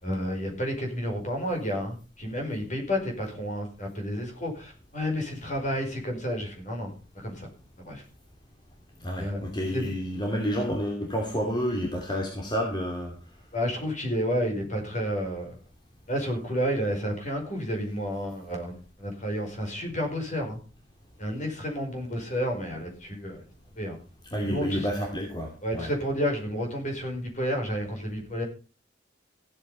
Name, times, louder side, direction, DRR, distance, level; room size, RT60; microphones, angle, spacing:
voice 1, 0.0-7.5 7.8-8.0 9.2-9.4 9.7-9.9 13.5-15.5 16.1-20.6 21.2-23.4 23.8-24.0 24.5-24.9 25.6-28.4, equal, 40° left, 2 dB, 5.2 m, -31 dB
voice 2, 9.0-13.1 24.3-25.9, equal, 25° left, 1 dB, 2.8 m, -29 dB
15.5 x 8.8 x 5.6 m, 0.35 s
head